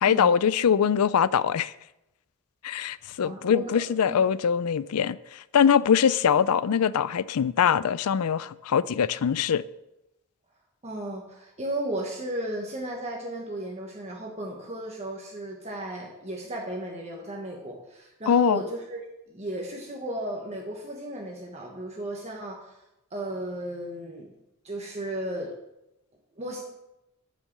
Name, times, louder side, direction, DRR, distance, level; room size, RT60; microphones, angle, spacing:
voice 1, 0.0-1.7 2.6-9.6 18.3-18.6, left 7 dB, 90° left, 0.4 m, -23 dB
voice 2, 3.2-4.2 10.8-19.0 19.3-22.8 23.1-24.3 24.6-25.5 26.4-26.6, right 1 dB, 30° right, 1.4 m, -35 dB
9.1 x 7.6 x 6.7 m
head